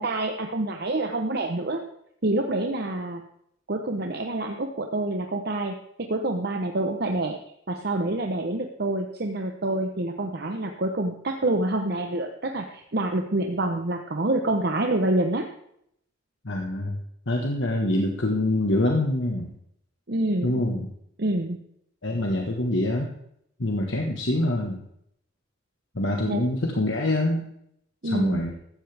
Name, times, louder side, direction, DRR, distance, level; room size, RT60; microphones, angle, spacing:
voice 1, 0.0-1.8 2.2-3.2 3.7-5.8 6.1-7.4 7.7-15.4 20.1-20.6 21.2-21.6 26.3-26.4 28.0-28.4, right 2 dB, 55° right, 4 dB, 0.9 m, -27 dB
voice 2, 16.4-19.5 20.4-20.9 22.0-23.1 23.6-24.8 25.9-27.5 28.0-28.5, left 1 dB, 70° left, 1 dB, 1.5 m, -25 dB
16.0 x 13.0 x 3.5 m, 0.73 s
head